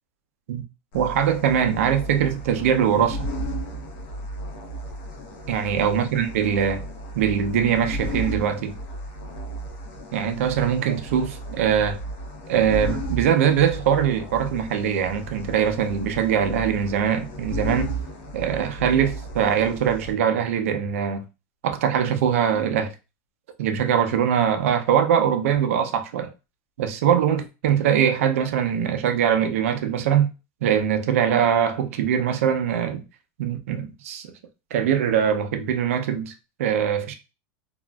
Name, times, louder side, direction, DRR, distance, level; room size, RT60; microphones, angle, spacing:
sound 1, 0.9-20.1, right 1 dB, 55° left, 0.8 m, -34 dB
voice 1, 0.9-3.3 5.5-6.8 7.2-8.8 10.1-12.0 12.5-17.9 18.3-21.2 21.6-22.9 23.6-26.3 26.8-30.3 30.6-33.0 33.4-34.3 34.7-36.3 36.6-37.1, right 8 dB, 85° right, 0.5 m, -22 dB
2.8 x 2.5 x 2.2 m
supercardioid pair, 170°, 7 cm